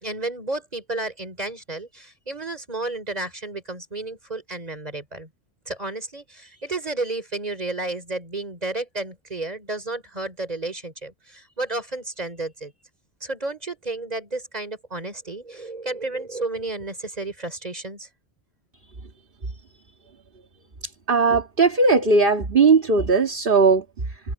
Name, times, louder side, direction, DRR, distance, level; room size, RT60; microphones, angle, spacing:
voice 1, 0.0-5.3 5.7-12.7 13.2-18.1, right 2 dB, 40° right, 3.7 m, -32 dB
voice 2, 21.1-24.2, right 4 dB, 55° right, 2.0 m, -18 dB
open air
omnidirectional pair, 1.1 m